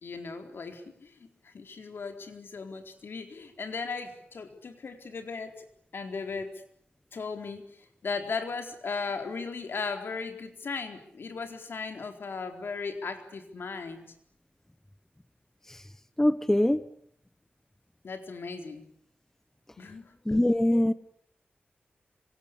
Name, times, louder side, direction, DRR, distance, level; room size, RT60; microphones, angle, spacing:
voice 1, 0.0-1.3 1.5-5.5 5.9-6.6 7.1-7.7 8.0-14.1 18.0-18.8 19.8-20.4, left 4 dB, 70° left, 6 dB, 4.2 m, -37 dB
voice 2, 16.2-16.8 20.3-20.9, left 1 dB, 10° left, 13 dB, 1.1 m, -23 dB
26.5 x 25.0 x 8.5 m, 0.67 s
wide cardioid pair, 100°, 4 cm